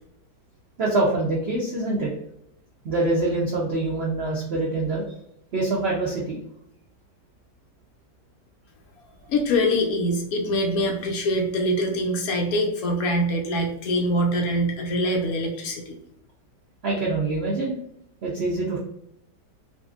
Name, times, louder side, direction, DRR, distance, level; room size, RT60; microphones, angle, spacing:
voice 1, 0.8-2.1 2.8-5.0 5.5-6.4 16.8-17.8 18.2-18.8, right 2 dB, 85° right, -3 dB, 0.5 m, -25 dB
voice 2, 9.3-16.0, equal, 70° left, 1 dB, 0.9 m, -24 dB
2.7 x 2.6 x 2.3 m, 0.75 s
omnidirectional pair, 1.8 m